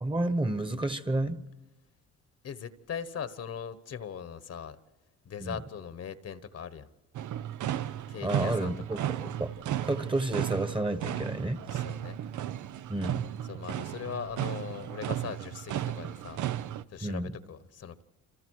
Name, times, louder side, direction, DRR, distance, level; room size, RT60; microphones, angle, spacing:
voice 1, 0.0-1.4 5.4-5.5 8.2-9.5 9.8-11.6 12.9-13.3 17.0-17.3, right 2 dB, 15° right, 11 dB, 1.4 m, -30 dB
voice 2, 2.4-4.8 5.2-6.9 8.1-9.0 11.7-12.2 13.4-16.4 16.9-18.0, left 7 dB, 55° left, 13 dB, 1.3 m, -40 dB
sound 1, 7.1-16.8, right 11 dB, 75° right, 0.8 m, -34 dB
28.5 x 27.5 x 4.8 m, 1.0 s
cardioid pair, 90°, 30 cm